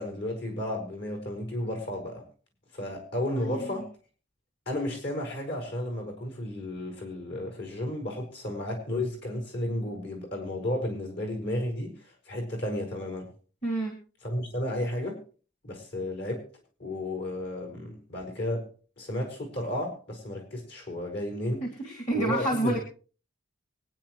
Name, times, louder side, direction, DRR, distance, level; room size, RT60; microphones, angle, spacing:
voice 1, 0.0-2.2 2.7-3.9 4.7-11.9 12.3-13.3 14.2-15.2 15.6-16.5 16.8-18.7 19.0-21.6 22.1-22.8, left 1 dB, 55° left, 3 dB, 5.3 m, -33 dB
voice 2, 3.4-3.7 13.6-14.0 21.6-22.8, right 1 dB, 35° left, 2 dB, 2.4 m, -29 dB
24.5 x 9.7 x 3.1 m, 0.38 s
head